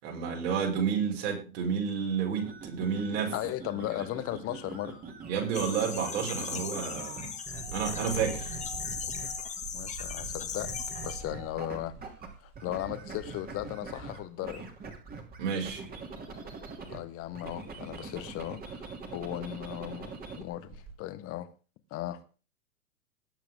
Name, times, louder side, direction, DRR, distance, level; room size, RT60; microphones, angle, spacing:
voice 1, 0.0-3.3 5.3-7.2 7.7-8.5 15.4-15.8, right 7 dB, 55° right, 6.0 m, -30 dB
sound 1, 2.4-9.6 10.6-12.3 12.5-17.0 17.3-20.4, right 4 dB, 20° right, 3.0 m, -43 dB
voice 2, 3.3-5.0 9.7-11.9 12.4-14.7 16.9-21.5 21.9-22.2, left 14 dB, 30° left, 1.4 m, -37 dB
Engine, 5.4-5.6 6.1-6.3 7.5-13.3 14.1-14.3 14.7-15.4 17.2-17.3 17.7-17.8 18.3-18.4 18.7-19.2 19.8-19.9 20.5-20.9, right 5 dB, 40° right, 4.3 m, -45 dB
sound 2, 5.5-11.2, left 6 dB, 15° left, 1.9 m, -38 dB
20.0 x 8.4 x 3.7 m
hypercardioid pair, 105°, 42 cm